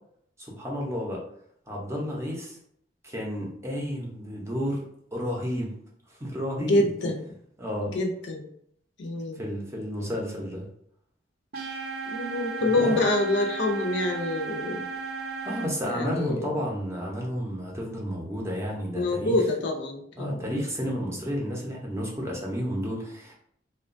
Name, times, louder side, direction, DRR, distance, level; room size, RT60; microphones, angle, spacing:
voice 1, 0.4-1.2 1.7-2.6 3.0-5.7 6.1-6.8 7.6-8.0 9.4-10.6 12.8-13.0 15.2-19.4 20.2-23.3, equal, 15° right, -2 dB, 0.6 m, -31 dB
voice 2, 6.7-7.2 7.9-8.5 9.0-9.4 12.1-14.8 15.9-16.5 18.9-20.4, left 2 dB, 75° left, 1 dB, 0.5 m, -26 dB
sound 1, 11.5-15.7, right 4 dB, 60° right, 0.6 m, -35 dB
2.9 x 2.2 x 2.5 m, 0.69 s
head